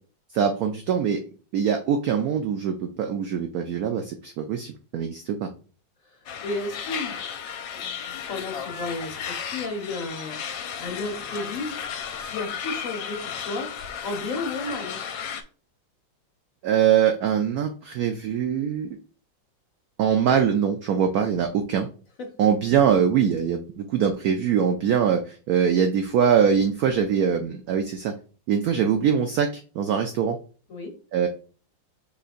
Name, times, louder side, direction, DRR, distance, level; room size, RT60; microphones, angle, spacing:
voice 1, 0.3-1.2 1.5-5.5 16.6-19.0 20.0-21.9 22.4-28.1 28.5-30.4 31.1-31.3, right 8 dB, 85° right, 5 dB, 0.8 m, -23 dB
voice 2, 6.0-7.3 7.7-10.4 10.8-11.7 12.2-13.7 14.0-15.0 22.2-22.3 30.7-31.0, left 2 dB, 55° left, 2 dB, 1.0 m, -33 dB
sound 1, 6.3-15.4, left 7 dB, 75° left, 1.2 m, -34 dB
5.4 x 3.9 x 2.5 m, 0.38 s
omnidirectional pair, 2.1 m